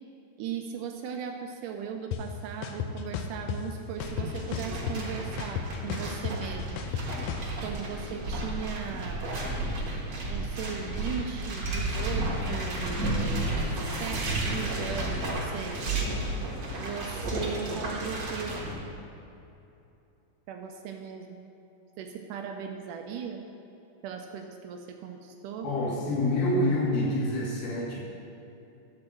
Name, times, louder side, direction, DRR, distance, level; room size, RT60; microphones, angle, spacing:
voice 1, 0.4-6.8 7.6-9.4 10.3-13.5 13.7-15.8 16.8-18.6 20.5-21.4 22.0-23.4 24.0-25.7, right 7 dB, 80° right, 4 dB, 1.9 m, -38 dB
sound 1, 2.1-2.2 2.6-3.6 4.0-5.1 5.4-7.5, left 8 dB, 85° left, 1.7 m, -33 dB
sound 2, 3.9-18.7, right 1 dB, 55° right, 1.3 m, -32 dB
voice 2, 25.6-28.0, left 1 dB, 65° left, -5 dB, 2.9 m, -27 dB
11.5 x 4.4 x 7.4 m, 2.8 s
omnidirectional pair, 4.2 m